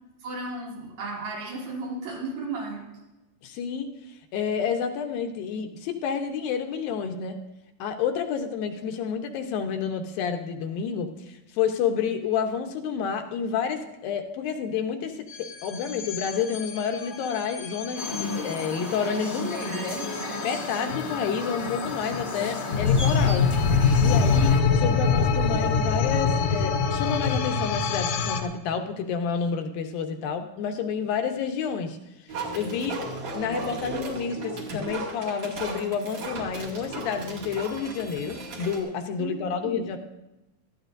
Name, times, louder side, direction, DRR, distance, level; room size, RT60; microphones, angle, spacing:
voice 1, 0.2-2.9 19.4-20.5 39.2-39.8, right 3 dB, 80° right, -2 dB, 4.2 m, -35 dB
voice 2, 3.4-7.4 7.8-20.0 20.4-23.5 24.0-32.0 32.5-33.0 33.3-40.0, left 7 dB, 85° left, 5 dB, 2.8 m, -29 dB
sound 1, 15.3-28.4, left 5 dB, 70° left, 1.9 m, -25 dB
sound 2, 18.0-24.6, left 2 dB, 20° left, 1.3 m, -34 dB
sound 3, 32.3-38.8, right 2 dB, 55° right, 3.4 m, -35 dB
19.0 x 13.5 x 2.6 m, 0.97 s
omnidirectional pair, 4.0 m